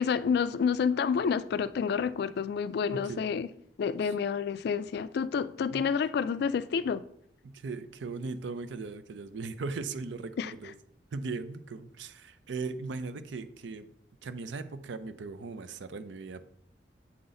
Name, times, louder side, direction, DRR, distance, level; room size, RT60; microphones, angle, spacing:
voice 1, 0.0-3.5 3.8-7.0 10.4-10.5, left 6 dB, 60° left, 0.3 m, -29 dB
voice 2, 2.9-3.3 4.1-4.2 5.7-5.8 7.4-10.7 11.1-13.9 14.2-16.4, right 4 dB, 85° right, 0.5 m, -38 dB
7.6 x 4.0 x 3.8 m
head